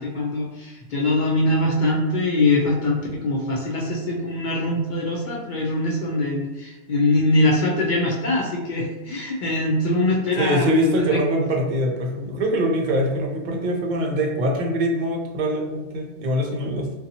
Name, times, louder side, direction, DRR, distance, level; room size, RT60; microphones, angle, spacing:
voice 1, 0.0-11.2, left 2 dB, 60° left, -3 dB, 0.5 m, -23 dB
voice 2, 10.4-16.9, equal, 60° right, 0 dB, 0.5 m, -23 dB
2.6 x 2.3 x 2.7 m, 1.1 s
omnidirectional pair, 1.2 m